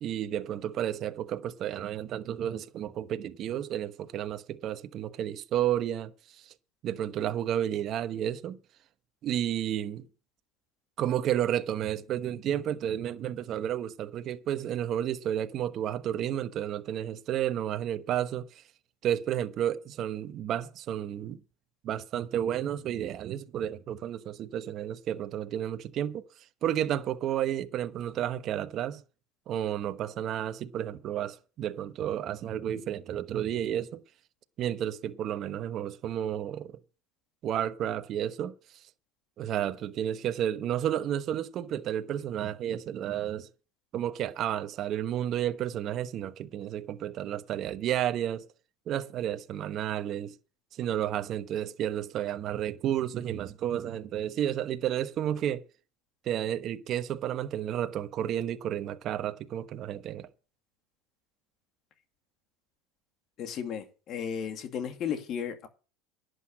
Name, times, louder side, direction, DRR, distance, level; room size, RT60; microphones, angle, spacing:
voice 1, 0.0-6.5 6.8-8.6 9.2-10.1 11.0-18.6 19.0-21.4 21.8-26.2 26.6-29.0 29.5-34.0 34.6-36.7 37.4-38.5 39.4-43.5 43.9-48.5 48.9-50.3 50.7-55.6 56.2-60.3, right 11 dB, 45° right, 1.1 m, -31 dB
voice 2, 63.4-65.7, left 8 dB, 45° left, 2.3 m, -34 dB
11.0 x 8.1 x 7.5 m
supercardioid pair, 115°, 0 cm